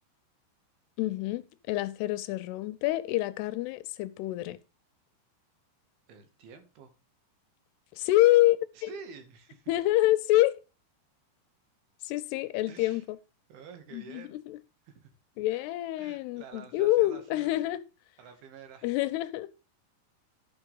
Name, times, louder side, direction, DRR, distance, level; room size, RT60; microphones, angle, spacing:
voice 1, 1.0-1.4 1.7-4.6 7.9-8.9 9.7-10.6 12.0-13.2 13.9-14.6 15.4-17.8 18.8-19.5, left 16 dB, 85° left, 2.6 m, -27 dB
voice 2, 6.1-6.9 8.7-9.7 12.7-13.0 13.5-14.4 14.9-15.1 15.5-15.6 16.0-17.5 18.2-18.9, right 6 dB, 70° right, 2.8 m, -49 dB
12.0 x 4.4 x 5.4 m
omnidirectional pair, 4.9 m